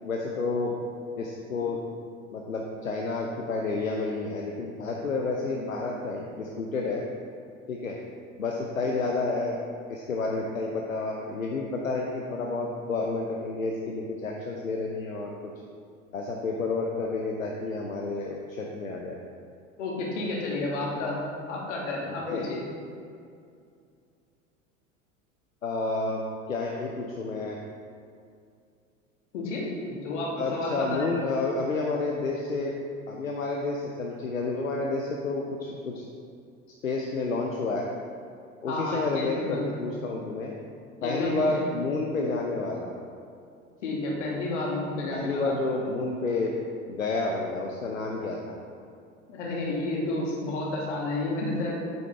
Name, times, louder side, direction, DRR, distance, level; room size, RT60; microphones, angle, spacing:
voice 1, 0.0-0.7 1.2-1.8 2.3-7.0 7.7-8.0 8.4-9.6 9.9-15.5 16.1-19.2 22.1-22.4 25.6-27.6 30.4-32.7 33.1-36.1 36.8-37.9 38.6-40.5 41.0-42.9 45.1-46.5 46.9-48.6, left 3 dB, 80° left, 0 dB, 0.8 m, -30 dB
voice 2, 19.8-21.2 21.5-22.6 29.3-31.1 38.7-39.6 41.0-41.6 43.8-45.6 49.3-51.9, left 2 dB, 60° left, -2 dB, 2.1 m, -31 dB
8.7 x 8.2 x 3.4 m, 2.4 s
figure-of-eight pair, 75°, 40 cm